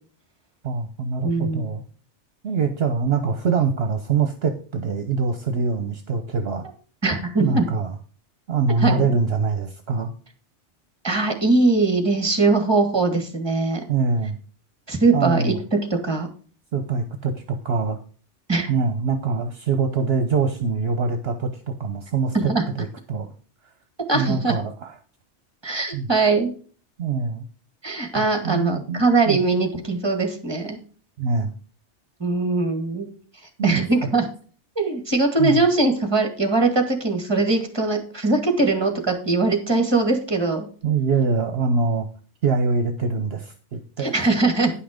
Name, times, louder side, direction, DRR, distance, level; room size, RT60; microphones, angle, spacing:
voice 1, 0.6-1.8 2.4-6.7 7.4-7.9 8.5-10.1 13.9-14.4 15.1-15.6 16.7-18.0 18.7-22.5 22.8-23.3 24.1-24.9 25.9-26.1 27.0-27.4 28.2-29.4 31.2-31.5 33.6-33.8 35.4-35.6 40.8-42.1 42.4-44.1, right 4 dB, 60° right, 6 dB, 1.1 m, -24 dB
voice 2, 1.2-1.7 7.0-7.6 8.8-9.1 11.0-13.8 14.9-15.5 15.9-16.3 18.5-18.7 22.3-22.6 24.1-24.5 25.6-26.5 27.8-30.8 32.2-33.1 33.6-34.3 34.7-40.7 44.0-44.7, right 3 dB, 20° right, 5 dB, 1.8 m, -21 dB
10.0 x 5.8 x 5.1 m, 0.41 s
omnidirectional pair, 1.2 m